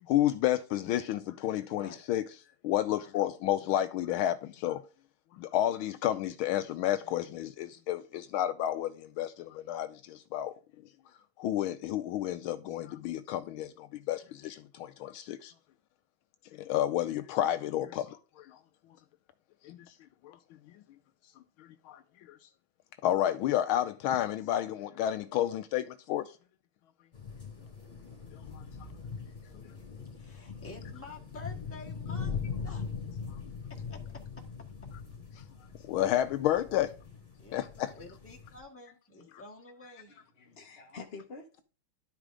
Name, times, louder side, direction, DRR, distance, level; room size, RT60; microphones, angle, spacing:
voice 1, 0.0-2.2 2.6-4.8 5.3-10.5 11.4-15.5 16.5-18.6 19.6-19.8 20.2-20.4 20.7-20.8 21.6-22.0 22.3-22.4 23.0-26.3 28.3-28.6 29.5-29.6 35.9-37.0 37.5-37.6, left 12 dB, 80° left, 1.4 m, -31 dB
voice 2, 1.7-2.0 30.1-32.9 33.7-34.5 35.6-35.7 37.4-40.1, left 3 dB, 5° left, 1.5 m, -50 dB
sound 1, 27.1-38.6, left 6 dB, 20° left, 2.2 m, -41 dB
voice 3, 40.1-41.6, left 4 dB, 45° left, 0.8 m, -47 dB
11.5 x 4.8 x 3.7 m
omnidirectional pair, 2.4 m